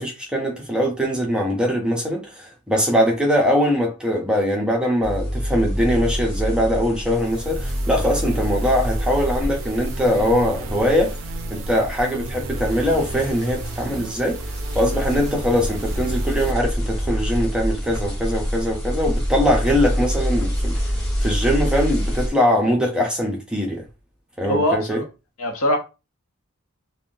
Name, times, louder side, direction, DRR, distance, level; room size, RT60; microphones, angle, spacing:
voice 1, 0.0-11.2 11.5-14.4 14.7-23.8 24.4-25.0, equal, 5° right, 0.6 m, -22 dB
sound 1, 5.0-22.3, equal, 25° left, 1.4 m, -26 dB
sound 2, 7.1-16.5, right 5 dB, 65° right, 0.4 m, -36 dB
voice 2, 24.5-25.0 25.4-25.8, left 1 dB, 80° left, 0.8 m, -21 dB
3.5 x 2.2 x 2.5 m
head